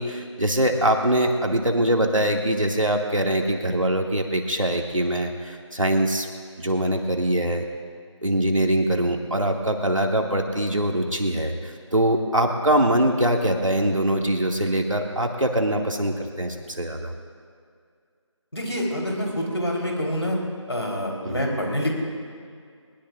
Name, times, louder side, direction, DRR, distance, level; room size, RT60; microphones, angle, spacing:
voice 1, 0.0-6.3 6.6-7.6 8.2-17.1 21.2-21.5, right 1 dB, 85° right, 1 dB, 2.2 m, -23 dB
voice 2, 18.5-20.4 20.7-21.9, equal, 60° left, -2 dB, 3.9 m, -26 dB
22.0 x 20.0 x 2.5 m, 2.2 s
figure-of-eight pair, 175°, 16 cm